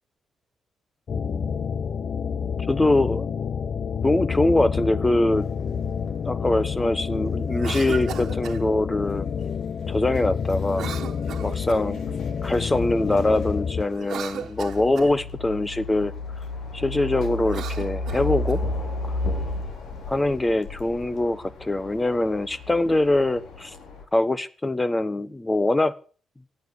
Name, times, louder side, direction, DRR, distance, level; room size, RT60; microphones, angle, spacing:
sound 1, 1.1-13.8, left 6 dB, 50° left, 0.8 m, -29 dB
voice 1, 1.1-1.6 2.7-3.3 4.0-5.5 6.3-9.3 9.9-10.9 11.4-12.0 12.4-16.1 16.7-18.6 20.1-23.7 24.1-25.9, left 2 dB, 15° left, 15 dB, 1.1 m, -23 dB
sound 2, 5.3-24.0, left 2 dB, 75° left, 4.2 m, -35 dB
Cough, 7.5-8.6 10.7-12.0 13.9-15.1 17.4-18.6, right 9 dB, 70° right, 1.5 m, -36 dB
16.5 x 9.0 x 8.3 m, 0.42 s
cardioid pair, 120°, 0 cm